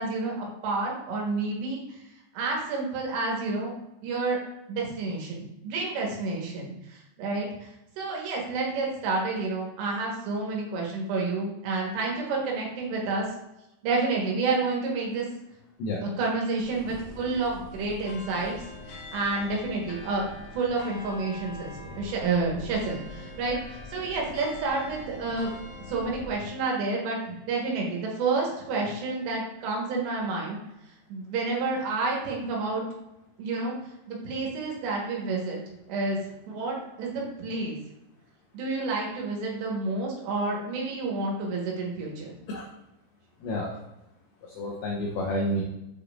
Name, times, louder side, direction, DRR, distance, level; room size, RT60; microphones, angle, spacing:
voice 1, 0.0-2.0 2.3-3.7 4.0-4.4 4.7-7.7 8.0-13.3 13.8-15.2 16.0-18.6 18.9-20.2 20.5-25.5 25.9-30.6 31.1-32.8 33.4-33.8 34.1-35.6 35.9-36.2 36.5-37.8 38.5-42.4, right 3 dB, 75° right, -1 dB, 3.3 m, -29 dB
sound 1, 16.6-26.3, left 2 dB, 65° left, 2.8 m, -43 dB
voice 2, 43.4-43.8 44.4-45.6, left 1 dB, 85° left, -1 dB, 2.1 m, -30 dB
7.8 x 5.0 x 2.4 m, 0.90 s
omnidirectional pair, 5.3 m